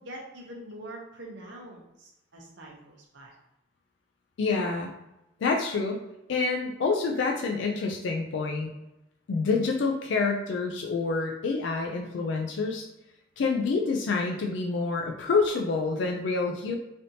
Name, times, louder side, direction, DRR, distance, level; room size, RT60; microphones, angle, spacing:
voice 1, 0.0-3.3, right 1 dB, 65° right, -1 dB, 0.8 m, -44 dB
voice 2, 4.4-4.9 5.4-6.0 6.3-8.7 9.3-12.9 13.4-16.7, left 4 dB, 70° left, 1 dB, 0.3 m, -27 dB
3.3 x 2.7 x 2.7 m, 0.91 s
head